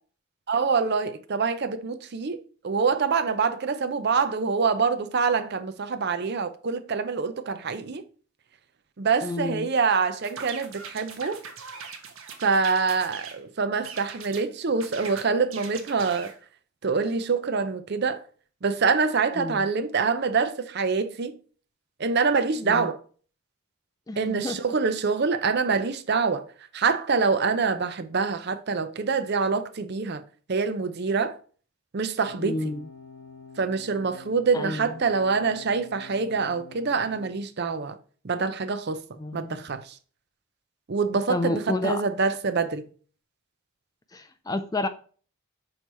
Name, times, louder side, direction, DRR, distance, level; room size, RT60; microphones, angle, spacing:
voice 1, 0.5-2.4 2.6-8.0 9.0-11.4 12.4-16.3 16.8-18.2 18.6-21.3 22.0-23.0 24.2-26.4 26.7-30.2 30.5-31.4 31.9-32.6 33.6-38.0 38.2-39.0 39.3-39.8 40.9-42.8, right 5 dB, 45° right, 0.5 m, -25 dB
voice 2, 9.2-9.7 19.4-19.7 22.6-22.9 24.1-24.6 32.4-32.9 34.5-35.0 39.2-39.6 41.3-42.0 44.1-44.9, left 2 dB, 15° left, 0.3 m, -30 dB
sound 1, 10.2-13.4 13.8-14.5 14.8-16.4, right 6 dB, 65° right, 1.0 m, -41 dB
sound 2, 32.3-37.3, left 4 dB, 90° left, 1.1 m, -47 dB
6.4 x 3.0 x 5.3 m
head